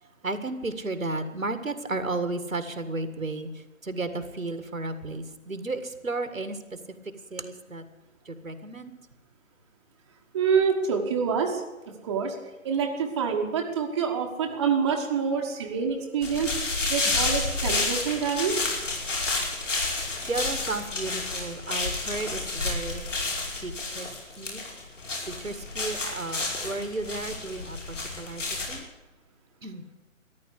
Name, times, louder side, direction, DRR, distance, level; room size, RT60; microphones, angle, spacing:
voice 1, 0.0-6.6 7.3-7.8 8.3-8.9 17.0-17.3 20.2-23.1 23.6-24.1 24.4-24.6 25.3-28.9 29.6-29.8, right 2 dB, 75° right, 10 dB, 2.0 m, -33 dB
voice 2, 10.3-12.4 12.6-16.5 16.9-18.6, right 6 dB, 20° right, 1 dB, 1.3 m, -26 dB
sound 1, 16.2-28.8, left 3 dB, 65° left, 5.2 m, -30 dB
14.0 x 11.0 x 8.4 m, 1.1 s
figure-of-eight pair, 145°, 41 cm